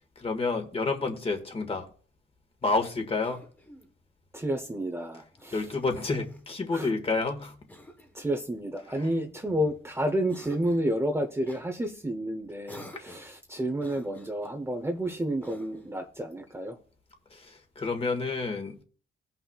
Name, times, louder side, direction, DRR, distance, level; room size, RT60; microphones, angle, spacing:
voice 1, 0.1-1.9 2.6-3.4 5.5-7.6 8.8-9.1 17.3-18.8, left 3 dB, 30° left, 1.7 m, -29 dB
Cough, 3.2-4.0 5.3-6.5 7.7-8.2 9.0-9.8 10.3-10.9 11.5-11.7 12.7-13.4 13.8-14.6 15.4-16.0, left 1 dB, 10° left, 1.1 m, -50 dB
voice 2, 4.3-5.7 6.7-6.9 8.1-16.8, right 1 dB, 15° right, 0.9 m, -30 dB
16.5 x 5.8 x 2.4 m
cardioid pair, 90°, 20 cm